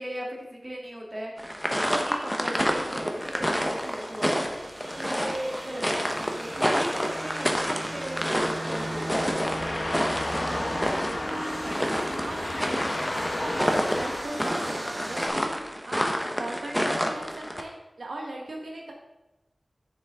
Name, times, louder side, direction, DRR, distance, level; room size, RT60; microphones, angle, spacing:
voice 1, 0.0-4.4 5.0-9.5, right 1 dB, 30° right, -2 dB, 2.1 m, -37 dB
sound 1, 1.4-17.6, equal, ahead, 1.0 m, -29 dB
sound 2, 2.8-15.3, right 1 dB, 55° right, 1.8 m, -39 dB
sound 3, 8.8-14.2, left 1 dB, 35° left, 1.2 m, -32 dB
voice 2, 10.4-12.7 13.1-16.0 16.4-17.7 18.0-18.9, right 2 dB, 85° right, -1 dB, 1.4 m, -38 dB
9.4 x 7.0 x 3.7 m, 1.0 s
wide cardioid pair, 70°, 0 cm